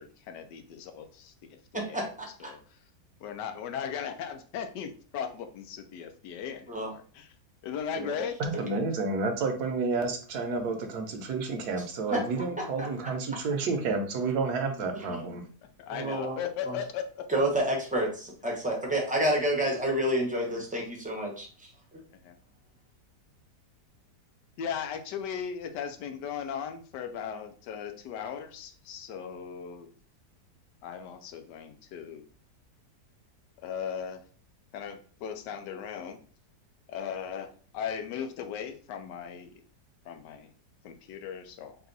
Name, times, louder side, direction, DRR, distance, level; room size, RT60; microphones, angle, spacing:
voice 1, 0.0-2.8 3.2-7.3 7.6-8.6 11.5-11.6 15.8-17.3 22.3-22.4 24.6-29.9 30.8-32.2 33.6-34.2 34.7-36.2 36.9-39.5 40.0-40.5 40.8-41.8, left 7 dB, 85° left, 7 dB, 1.2 m, -37 dB
voice 2, 1.7-2.5 6.7-6.9 8.0-8.1 8.7-8.8 12.1-12.2 12.8-13.1 15.1-15.4 15.9-16.4 16.7-16.8 17.3-21.3, right 1 dB, 10° right, -1 dB, 0.5 m, -29 dB
voice 3, 8.4-15.4, right 4 dB, 70° right, 5 dB, 1.2 m, -30 dB
4.2 x 2.3 x 3.9 m, 0.42 s
omnidirectional pair, 1.8 m